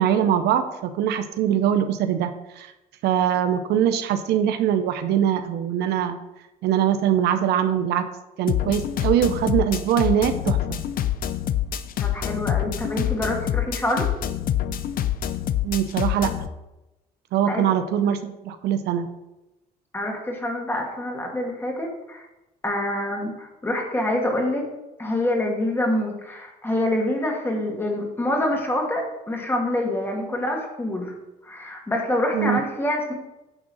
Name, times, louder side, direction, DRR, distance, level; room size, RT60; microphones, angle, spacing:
voice 1, 0.0-2.3 2.6-2.7 3.0-6.2 6.6-8.1 8.4-10.8 15.6-16.3 17.3-19.1 32.3-32.6, right 9 dB, 80° right, 9 dB, 0.7 m, -22 dB
sound 1, 8.5-16.5, left 11 dB, 60° left, 0.6 m, -26 dB
voice 2, 12.0-14.1 17.5-17.7 19.9-22.3 22.6-24.7 25.0-31.1 31.4-33.1, left 1 dB, 15° left, 0 dB, 2.0 m, -26 dB
10.0 x 3.7 x 6.2 m, 0.97 s
cardioid pair, 110°, 17 cm